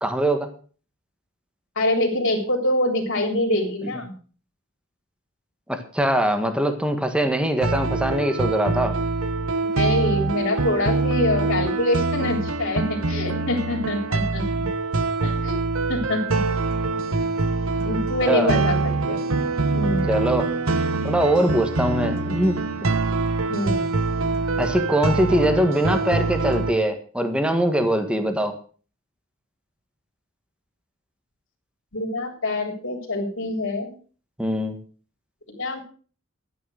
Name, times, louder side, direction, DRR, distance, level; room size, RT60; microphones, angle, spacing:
voice 1, 0.0-0.5 5.7-9.0 18.3-18.6 20.1-20.5 21.0-22.6 24.6-28.5 34.4-34.8, right 1 dB, 5° right, 7 dB, 1.6 m, -22 dB
voice 2, 1.8-4.1 9.7-14.4 15.2-15.6 15.9-16.4 17.8-19.2 19.7-20.3 23.5-23.9 31.9-33.9 35.5-35.8, left 1 dB, 65° left, 1 dB, 3.6 m, -25 dB
sound 1, 7.6-26.7, right 3 dB, 75° right, 1.2 m, -24 dB
12.5 x 9.5 x 6.4 m, 0.41 s
head